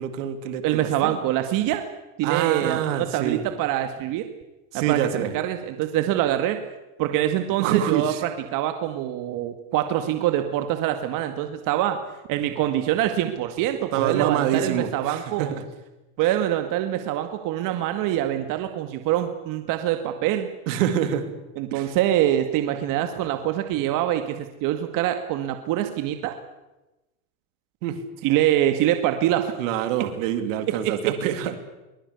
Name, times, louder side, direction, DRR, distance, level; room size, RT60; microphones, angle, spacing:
voice 1, 0.0-1.2 2.2-3.4 4.7-5.3 7.6-8.2 13.9-15.7 20.7-21.2 21.7-21.9 27.8-28.0 29.6-31.6, right 10 dB, 85° right, 9 dB, 3.2 m, -26 dB
voice 2, 0.6-1.8 2.2-4.3 4.7-6.6 7.0-12.0 12.3-15.5 16.2-20.5 21.6-26.4 28.2-29.5 30.8-31.1, right 12 dB, 60° right, 7 dB, 2.0 m, -25 dB
23.0 x 20.5 x 8.3 m, 1.0 s
supercardioid pair, 125°, 37 cm